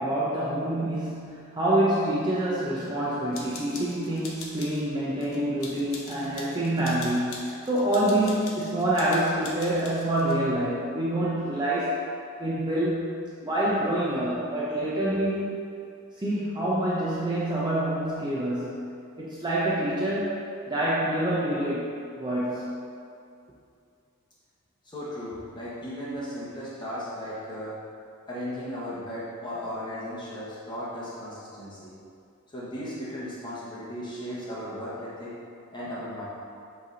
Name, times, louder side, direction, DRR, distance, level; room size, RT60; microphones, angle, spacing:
voice 1, 0.0-12.0 12.4-13.1 13.4-15.5 16.2-18.9 19.2-20.3 20.7-22.8, right 1 dB, 20° right, -8 dB, 0.7 m, -26 dB
sound 1, 3.3-4.9 5.2-10.4, left 3 dB, 70° left, 0.9 m, -42 dB
voice 2, 24.8-27.8 28.3-31.9 32.5-35.4 35.7-36.3, equal, 20° left, -8 dB, 1.1 m, -36 dB
8.1 x 3.4 x 3.9 m, 2.5 s
head